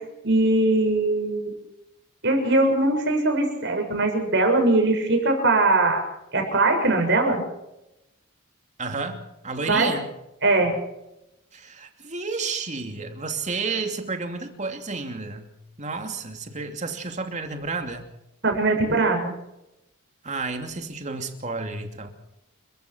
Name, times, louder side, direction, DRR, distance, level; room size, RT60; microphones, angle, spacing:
voice 1, 0.2-1.5 2.2-6.0 6.3-7.4 9.7-9.9 10.4-10.7 18.4-19.3, right 2 dB, 55° right, 3 dB, 6.9 m, -21 dB
voice 2, 8.8-10.1 11.5-15.5 15.8-18.1 20.2-22.1, right 4 dB, 35° right, 5 dB, 2.8 m, -31 dB
29.5 x 15.5 x 6.2 m, 0.89 s
head